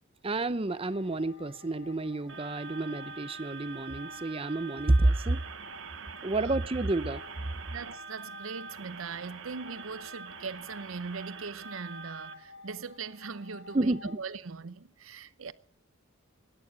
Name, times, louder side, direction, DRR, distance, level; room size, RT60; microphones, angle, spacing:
voice 1, 0.2-5.4 6.2-7.2 13.7-14.2, right 2 dB, 30° right, 0.6 m, -29 dB
sound 1, 0.7-14.2, left 3 dB, 60° left, 2.6 m, -53 dB
sound 2, 2.3-12.3, right 5 dB, 70° right, 1.2 m, -45 dB
voice 2, 7.7-15.5, right 5 dB, 90° right, 0.7 m, -40 dB
16.5 x 11.0 x 6.2 m
head